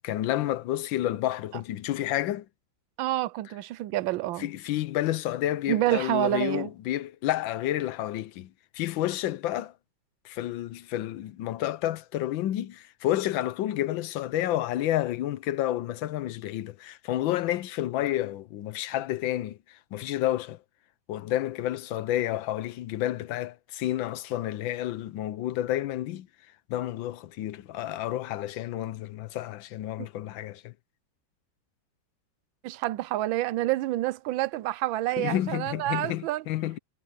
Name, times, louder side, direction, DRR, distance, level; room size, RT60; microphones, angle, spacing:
voice 1, 0.0-2.4 4.4-9.7 10.2-20.6 21.1-26.3 26.7-30.7 35.2-36.8, left 13 dB, 85° left, 1.5 m, -30 dB
voice 2, 3.0-4.5 5.7-6.7 30.0-30.1 32.6-36.4, right 15 dB, 90° right, 1.4 m, -28 dB
omnidirectional pair, 2.1 m